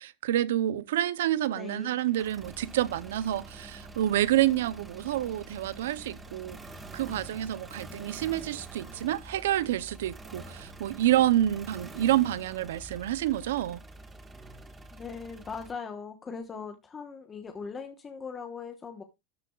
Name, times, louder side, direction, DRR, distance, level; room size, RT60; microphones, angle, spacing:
voice 1, 0.0-6.6 6.9-13.8, right 13 dB, 90° right, 0.7 m, -28 dB
sound 1, 1.4-15.7, right 2 dB, 15° right, 1.5 m, -46 dB
voice 2, 1.5-2.0 14.9-19.0, left 5 dB, 20° left, 1.1 m, -40 dB
12.5 x 10.0 x 2.4 m
supercardioid pair, 145°, 0 cm